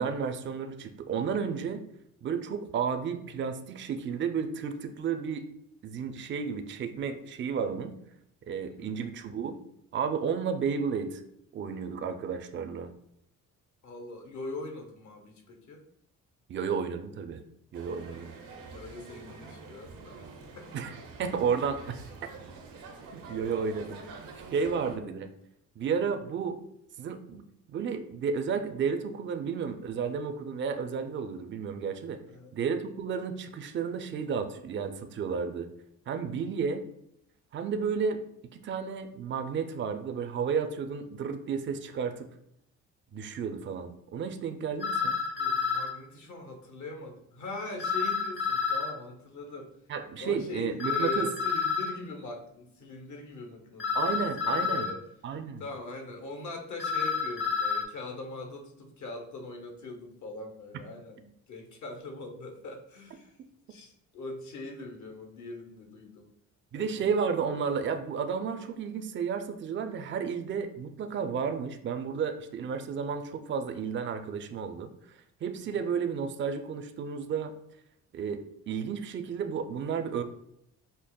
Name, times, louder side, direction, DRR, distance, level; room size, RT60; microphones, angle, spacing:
voice 1, 0.0-1.8 2.2-5.5 5.8-8.0 8.5-9.6 9.9-11.2 11.5-12.9 16.5-17.4 17.7-18.3 20.7-22.0 23.1-24.2 24.5-25.3 25.8-26.6 27.0-27.4 27.7-32.2 32.5-35.7 36.1-36.8 37.5-38.2 38.5-42.3 43.1-45.2 49.9-51.3 53.9-54.9 55.2-55.6 66.7-77.5 78.1-80.2, right 6 dB, 35° right, 8 dB, 0.4 m, -32 dB
voice 2, 13.8-15.8 18.1-18.4 18.6-20.3 20.5-20.7 24.9-25.0 32.3-32.5 45.4-49.7 50.2-55.0 55.6-63.4 63.7-66.3 66.7-67.4 75.7-75.8, left 2 dB, 60° left, 3 dB, 0.9 m, -42 dB
sound 1, 17.7-25.0, right 4 dB, 75° right, 0.7 m, -46 dB
sound 2, 44.8-45.9 47.8-48.9 50.8-51.9 53.8-54.9 56.8-57.8, left 6 dB, 35° left, 0.6 m, -29 dB
5.2 x 2.0 x 2.3 m, 0.76 s
supercardioid pair, 75°, 34 cm